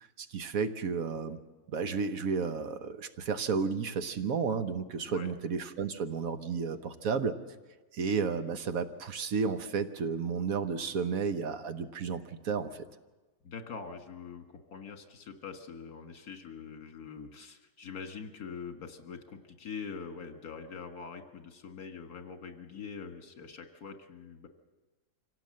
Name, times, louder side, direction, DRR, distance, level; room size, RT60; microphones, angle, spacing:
voice 1, 0.0-1.4 1.7-7.4 7.9-12.9, right 5 dB, 65° right, 9 dB, 1.3 m, -32 dB
voice 2, 13.4-14.5 14.7-24.5, left 6 dB, 70° left, 6 dB, 2.1 m, -44 dB
25.0 x 17.0 x 7.6 m, 1.2 s
omnidirectional pair, 1.7 m